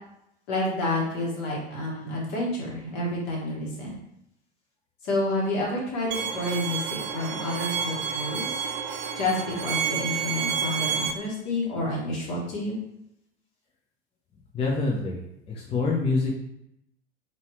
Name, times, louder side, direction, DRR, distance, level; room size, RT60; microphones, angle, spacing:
voice 1, 0.5-4.0 5.0-8.6 9.1-12.8, left 1 dB, 50° left, -3 dB, 1.7 m, -29 dB
Bowed string instrument, 6.1-11.1, right 7 dB, 35° right, 0.6 m, -30 dB
voice 2, 14.5-15.2 15.5-16.3, left 3 dB, 15° left, -2 dB, 0.6 m, -25 dB
4.0 x 3.7 x 3.0 m, 0.78 s
figure-of-eight pair, 85°, 34 cm